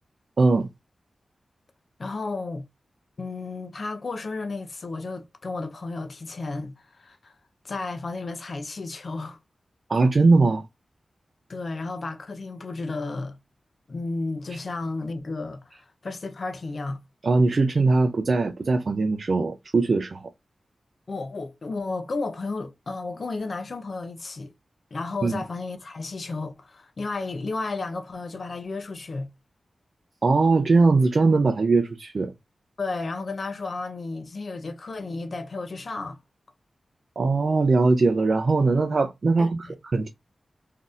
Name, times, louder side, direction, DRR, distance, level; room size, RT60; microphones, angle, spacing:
voice 1, 0.4-0.7 9.9-10.6 17.2-20.3 25.2-25.3 30.2-32.3 37.2-40.1, right 3 dB, 55° right, 0.4 m, -21 dB
voice 2, 2.0-2.6 3.2-7.3 7.6-9.4 11.5-13.4 13.9-17.0 21.1-24.5 24.9-29.3 32.8-36.2 39.4-39.7, left 3 dB, 55° left, 0.6 m, -33 dB
3.9 x 2.7 x 2.4 m
wide cardioid pair, 90°, 0 cm